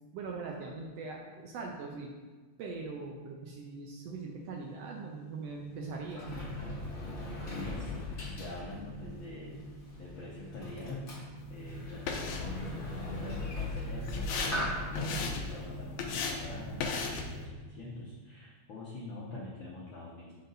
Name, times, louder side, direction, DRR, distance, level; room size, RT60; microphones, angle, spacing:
voice 1, 0.1-2.1 2.6-6.3, right 3 dB, 75° right, 0 dB, 1.5 m, -41 dB
sound 1, 3.9-18.5, right 5 dB, 60° right, 1.2 m, -49 dB
Sliding door, 5.6-17.0, left 2 dB, 45° left, 0.9 m, -40 dB
voice 2, 7.5-9.6 9.9-11.1 11.5-20.3, left 2 dB, 70° left, -6 dB, 1.2 m, -45 dB
sound 2, 11.4-17.4, left 5 dB, 85° left, 2.1 m, -38 dB
6.0 x 5.3 x 3.9 m, 1.3 s
omnidirectional pair, 3.3 m